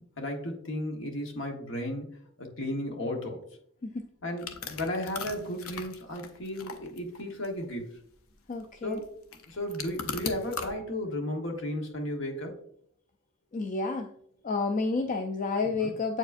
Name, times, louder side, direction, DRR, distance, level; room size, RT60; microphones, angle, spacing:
voice 1, 0.2-2.1 2.4-3.4 4.2-8.0 8.8-9.1 9.5-12.5 15.8-15.9, left 1 dB, 60° left, 2 dB, 1.2 m, -34 dB
sound 1, 4.4-10.7, left 5 dB, 80° left, 0.7 m, -40 dB
voice 2, 8.5-9.0 13.5-14.1 14.4-16.2, left 3 dB, 35° left, 4 dB, 0.3 m, -30 dB
7.7 x 4.7 x 2.5 m, 0.69 s
head